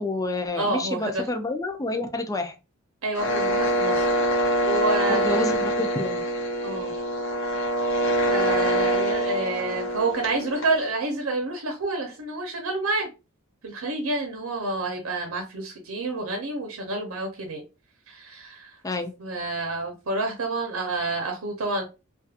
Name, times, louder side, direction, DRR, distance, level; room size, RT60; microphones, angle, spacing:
voice 1, 0.0-2.5 5.1-6.2 18.8-19.1, left 2 dB, 15° left, 6 dB, 0.4 m, -29 dB
voice 2, 0.5-1.3 3.0-4.2 4.6-5.5 6.6-6.9 8.3-13.1 13.6-17.6 18.1-18.8 19.2-21.8, right 2 dB, 90° right, 3 dB, 0.7 m, -29 dB
sound 1, 3.2-10.9, right 1 dB, 60° left, 0.6 m, -25 dB
2.4 x 2.3 x 2.7 m, 0.29 s
head